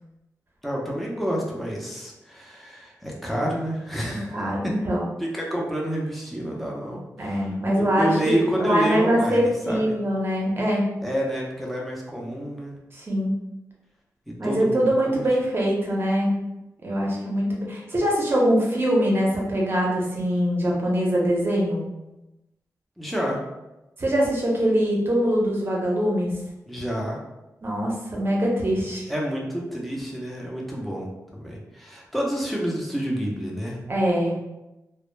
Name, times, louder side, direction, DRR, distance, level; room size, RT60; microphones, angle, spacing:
voice 1, 0.6-4.7 5.2-10.0 11.0-12.7 14.3-15.2 23.0-23.4 26.7-27.2 29.1-33.8, equal, ahead, -3 dB, 0.6 m, -29 dB
voice 2, 4.1-5.1 7.2-10.9 12.9-13.3 14.4-16.3 16.8-21.8 24.0-26.3 27.6-29.0 33.9-34.3, equal, 35° right, -3 dB, 0.7 m, -23 dB
2.1 x 2.0 x 3.1 m, 0.98 s
wide cardioid pair, 90°, 6 cm